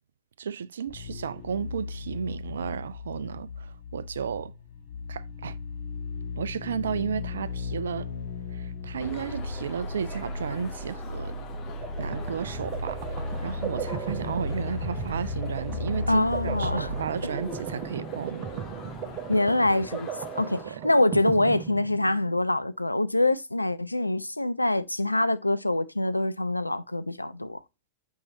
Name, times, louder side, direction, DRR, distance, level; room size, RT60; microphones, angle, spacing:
voice 1, 0.4-4.5 5.1-5.6 6.4-8.1 8.5-11.4 12.0-18.7 20.6-20.8, right 7 dB, 65° right, 0.4 m, -33 dB
sound 1, 0.9-18.4 18.7-18.8, left 3 dB, 55° left, 1.6 m, -36 dB
sound 2, 9.0-20.6, left 6 dB, 35° left, 1.7 m, -44 dB
sound 3, 11.5-22.4, right 7 dB, 35° right, 1.1 m, -37 dB
voice 2, 16.1-16.9 19.3-20.1 20.4-27.6, left 2 dB, 85° left, 0.4 m, -25 dB
8.2 x 4.7 x 3.0 m
figure-of-eight pair, 90°, 0 cm